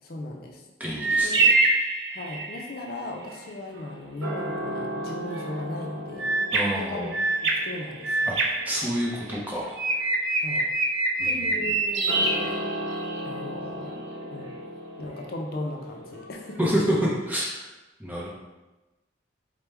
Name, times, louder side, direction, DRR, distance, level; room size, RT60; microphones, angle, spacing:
voice 1, 0.0-0.6 1.2-1.4 2.1-6.3 6.7-7.1 7.4-8.2 10.4-10.6 11.2-12.6 13.2-13.9 14.3-14.6 15.0-16.7, left 1 dB, 50° left, 1 dB, 0.5 m, -37 dB
voice 2, 0.8-1.6 6.5-7.1 8.3-9.8 11.2-11.8 16.6-17.5 18.0-18.3, equal, 10° right, -5 dB, 0.7 m, -28 dB
sound 1, 1.0-2.7 6.2-9.4 9.8-13.2, right 3 dB, 60° right, 0.5 m, -25 dB
sound 2, 3.2-17.0, equal, 85° right, 0.9 m, -37 dB
4.5 x 2.2 x 3.3 m, 1.1 s
head